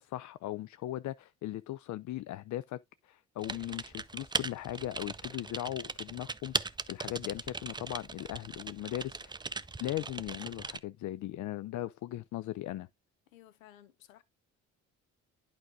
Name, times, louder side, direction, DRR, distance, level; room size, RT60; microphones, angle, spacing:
voice 1, 0.0-9.4 9.8-12.9, left 14 dB, 50° left, 0.5 m, -38 dB
Typing, 3.4-10.8, right 3 dB, 10° right, 0.5 m, -39 dB
voice 2, 13.3-14.2, left 12 dB, 85° left, 0.8 m, -56 dB
11.0 x 5.0 x 2.5 m
hypercardioid pair, 45°, 39 cm